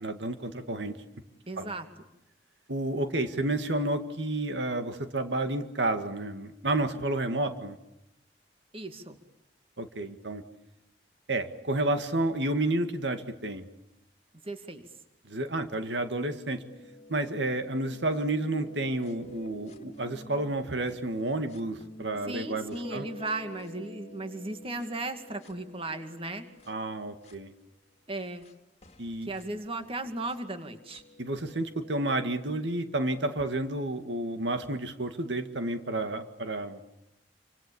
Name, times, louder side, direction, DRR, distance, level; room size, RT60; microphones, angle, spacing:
voice 1, 0.0-1.0 1.6-1.7 2.7-7.8 9.8-10.4 11.3-13.7 15.3-16.6 17.1-23.1 26.7-27.5 29.0-29.3 31.2-36.8, right 2 dB, 85° right, 8 dB, 2.0 m, -30 dB
voice 2, 1.5-1.9 8.7-9.2 14.4-14.9 22.3-26.5 28.1-28.5 29.2-31.0, right 2 dB, 35° right, 7 dB, 2.3 m, -36 dB
sound 1, 16.6-21.0 21.5-27.4 28.4-28.5 28.8-32.1, left 1 dB, 40° left, 2.2 m, -50 dB
28.5 x 26.0 x 7.1 m, 0.88 s
head